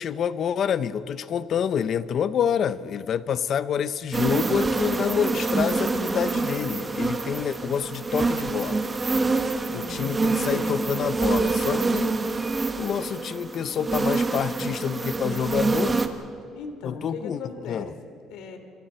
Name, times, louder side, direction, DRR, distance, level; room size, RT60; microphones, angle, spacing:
voice 1, 0.0-8.8 9.7-12.1 12.8-16.0 16.8-17.4 17.7-17.9, left 8 dB, 40° left, 15 dB, 0.6 m, -27 dB
sound 1, 4.1-16.1, right 3 dB, 20° right, 1.2 m, -26 dB
voice 2, 9.7-10.8 16.5-18.6, left 4 dB, 80° left, 7 dB, 2.7 m, -39 dB
29.0 x 26.0 x 4.4 m, 2.6 s
cardioid pair, 175°, 0 cm